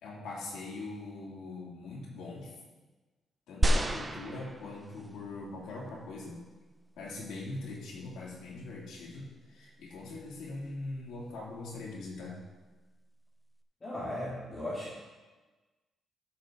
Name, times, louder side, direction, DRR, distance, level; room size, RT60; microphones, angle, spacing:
voice 1, 0.0-2.6 3.5-6.4 7.0-12.4, left 2 dB, 85° left, -4 dB, 2.8 m, -42 dB
sound 1, 3.6-5.1 5.9-6.0, right 1 dB, 15° right, 0.5 m, -29 dB
voice 2, 13.8-15.0, left 1 dB, 20° left, -6 dB, 1.8 m, -37 dB
13.5 x 6.3 x 3.9 m, 1.3 s
cardioid pair, 165°, 0 cm